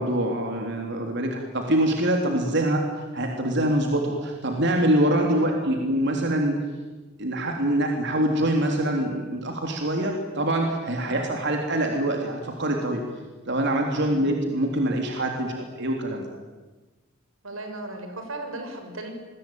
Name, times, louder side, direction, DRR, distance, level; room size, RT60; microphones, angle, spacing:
voice 1, 0.0-6.6 7.2-13.0 13.4-16.3, right 1 dB, 60° right, 2 dB, 3.5 m, -24 dB
voice 2, 17.4-19.1, right 2 dB, 90° right, 5 dB, 6.4 m, -37 dB
28.0 x 22.0 x 9.3 m, 1.2 s
head